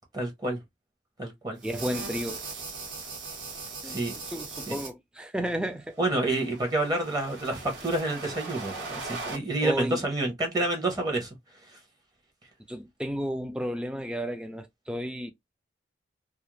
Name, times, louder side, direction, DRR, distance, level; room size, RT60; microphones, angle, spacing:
voice 1, 0.1-0.6 1.2-1.6 3.8-4.1 4.7-4.8 6.0-11.3, right 2 dB, 20° right, 0.8 m, -28 dB
voice 2, 1.6-2.4 3.8-4.0 4.2-5.9 9.6-10.0 12.7-15.3, equal, 5° right, 0.3 m, -32 dB
sound 1, 1.6-4.9 6.0-9.4, right 3 dB, 75° right, 1.2 m, -39 dB
2.4 x 2.0 x 3.0 m
head